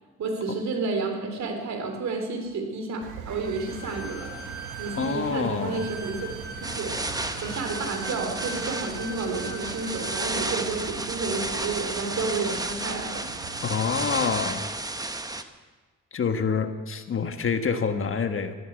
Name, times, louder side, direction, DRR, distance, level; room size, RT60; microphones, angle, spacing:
voice 1, 0.2-4.4 4.8-6.3 6.6-7.0 7.4-13.3, right 3 dB, 60° right, 4 dB, 3.2 m, -31 dB
Engine, 3.0-13.8, right 7 dB, 90° right, 1.5 m, -42 dB
Bowed string instrument, 3.4-10.3, right 2 dB, 30° right, 3.9 m, -41 dB
voice 2, 5.0-5.8 13.6-14.7 16.1-18.6, left 5 dB, 45° left, 8 dB, 1.4 m, -27 dB
sound 1, 6.6-15.4, right 2 dB, 10° right, 1.0 m, -32 dB
14.0 x 12.0 x 8.0 m, 1.4 s
cardioid pair, 90°, 30 cm